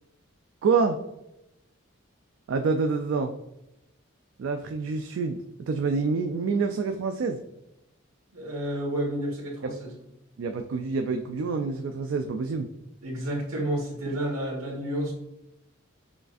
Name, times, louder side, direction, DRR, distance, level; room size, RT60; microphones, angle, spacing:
voice 1, 0.6-1.0 2.5-3.3 4.4-7.4 9.6-9.7 10.4-12.7, right 4 dB, 65° right, 5 dB, 0.3 m, -27 dB
voice 2, 8.3-9.9 13.0-15.1, right 1 dB, 80° right, -2 dB, 1.4 m, -30 dB
7.0 x 2.5 x 2.4 m, 0.86 s
head